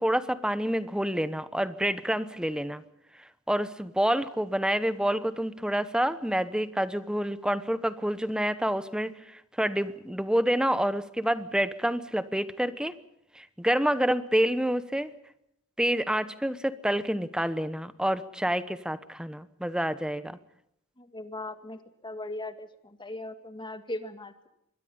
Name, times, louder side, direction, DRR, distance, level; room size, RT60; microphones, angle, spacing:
voice 1, 0.0-2.8 3.5-12.9 13.4-15.1 15.8-20.4, equal, 5° right, 13 dB, 1.0 m, -28 dB
voice 2, 21.0-24.5, left 2 dB, 20° left, 8 dB, 2.0 m, -39 dB
26.0 x 22.0 x 5.5 m, 0.78 s
head